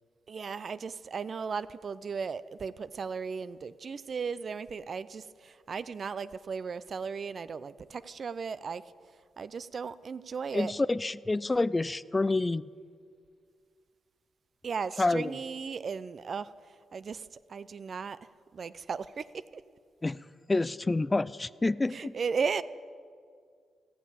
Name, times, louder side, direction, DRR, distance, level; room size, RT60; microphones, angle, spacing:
voice 1, 0.3-8.8 9.4-10.7 14.6-16.5 16.9-18.2 18.5-19.6 21.9-22.6, right 5 dB, 55° right, 15 dB, 0.4 m, -36 dB
voice 2, 10.5-12.7 15.0-15.4 20.0-20.2 20.5-22.1, left 2 dB, 25° left, 18 dB, 0.3 m, -28 dB
15.0 x 7.2 x 8.5 m, 2.1 s
cardioid pair, 60°, 0 cm